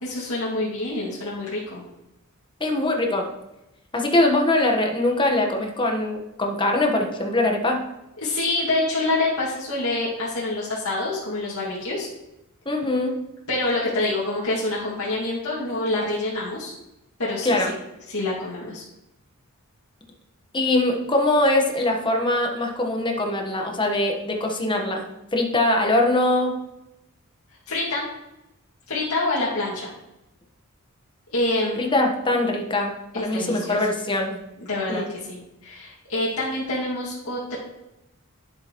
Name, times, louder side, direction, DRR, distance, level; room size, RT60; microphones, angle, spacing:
voice 1, 0.0-1.8 8.2-12.1 13.5-16.7 17.2-17.6 18.1-18.8 27.7-28.1 28.9-29.9 31.3-31.8 33.1-33.8 34.6-37.6, left 2 dB, 70° left, -7 dB, 2.1 m, -26 dB
voice 2, 2.6-3.3 3.9-7.8 12.6-13.3 17.4-17.7 20.5-25.0 25.3-26.6 31.8-34.4 34.9-35.1, left 1 dB, 20° left, 1 dB, 1.2 m, -22 dB
9.8 x 7.6 x 3.0 m, 0.92 s
head